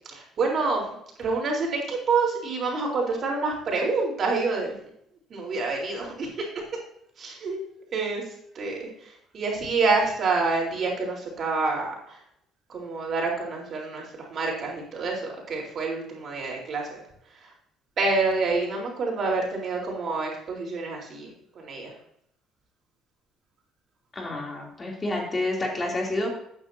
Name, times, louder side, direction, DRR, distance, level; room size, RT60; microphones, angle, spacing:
voice 1, 0.1-0.8 1.2-4.7 5.3-6.5 7.2-7.6 7.9-8.2 8.5-12.2 12.7-14.0 14.3-17.0 18.0-21.9, right 3 dB, 50° right, -1 dB, 3.9 m, -27 dB
voice 2, 24.1-26.3, left 2 dB, 25° left, -1 dB, 3.0 m, -29 dB
12.0 x 9.2 x 2.8 m, 0.73 s
supercardioid pair, 85°, 0 cm